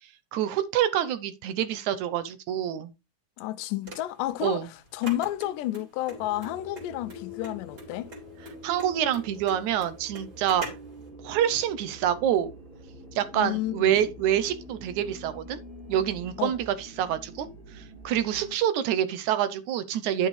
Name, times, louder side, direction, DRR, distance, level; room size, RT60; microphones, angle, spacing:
voice 1, 0.3-2.9 4.4-4.7 8.6-10.7 11.2-12.5 13.2-15.6 15.9-17.5 17.7-20.3, right 10 dB, 75° right, 2.1 m, -26 dB
voice 2, 3.4-8.1 13.3-14.0 16.4-16.5, left 15 dB, 85° left, 2.2 m, -31 dB
sound 1, 3.8-11.0, right 1 dB, 30° right, 3.9 m, -43 dB
sound 2, 6.1-18.6, equal, 10° right, 3.5 m, -46 dB
11.0 x 6.5 x 3.3 m
omnidirectional pair, 3.6 m